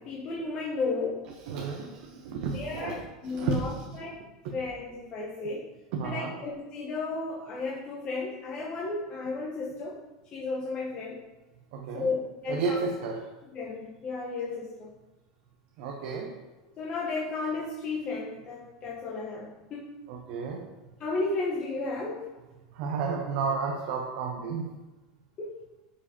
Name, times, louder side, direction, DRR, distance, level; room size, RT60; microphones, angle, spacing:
voice 1, 0.0-1.3 2.4-4.2 4.5-5.7 6.0-10.0 10.3-11.2 11.9-12.8 13.5-14.9 16.8-19.9 21.0-22.3 25.4-25.5, left 3 dB, 40° left, -3 dB, 1.1 m, -33 dB
voice 2, 1.5-2.9 3.2-4.0 5.9-6.4 11.7-12.1 12.5-13.2 15.8-16.3 20.1-20.7 22.7-24.7, right 5 dB, 65° right, 1 dB, 0.8 m, -32 dB
9.6 x 4.8 x 2.9 m, 1.1 s
supercardioid pair, 110°, 2 cm